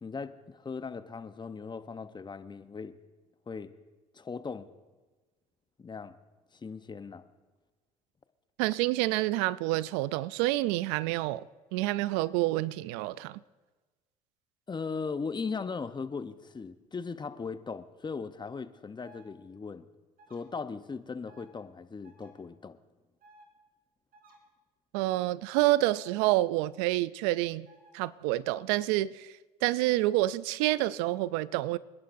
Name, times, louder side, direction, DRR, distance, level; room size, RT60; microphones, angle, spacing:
voice 1, 0.0-2.9 3.5-3.7 4.1-4.7 5.8-6.1 6.5-7.2 14.7-19.9 20.3-22.8, left 5 dB, 25° left, 0.9 m, -38 dB
voice 2, 8.6-11.5 11.7-13.4 24.9-27.7 27.9-29.3 29.6-31.8, right 17 dB, 80° right, 0.4 m, -28 dB
sound 1, 19.0-19.2 20.2-20.4 21.3-21.5 22.0-22.3 23.2-23.5 24.1-24.4 26.0-26.3 27.7-27.9, right 2 dB, 55° right, 3.6 m, -57 dB
28.0 x 11.0 x 2.6 m
hypercardioid pair, 70°, 18 cm